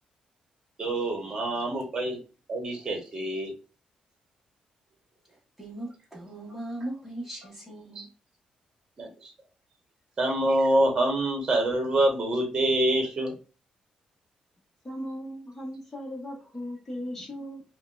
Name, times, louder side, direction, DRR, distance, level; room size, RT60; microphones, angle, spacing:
voice 1, 0.8-2.2 2.5-3.5 7.9-8.1 9.0-9.3 10.2-13.4, right 1 dB, 30° right, 1.2 m, -26 dB
voice 2, 5.6-8.1, right 1 dB, 5° right, 1.3 m, -38 dB
voice 3, 14.8-17.6, equal, 15° left, 1.2 m, -37 dB
5.2 x 2.2 x 2.6 m
wide cardioid pair, 165°, 2 cm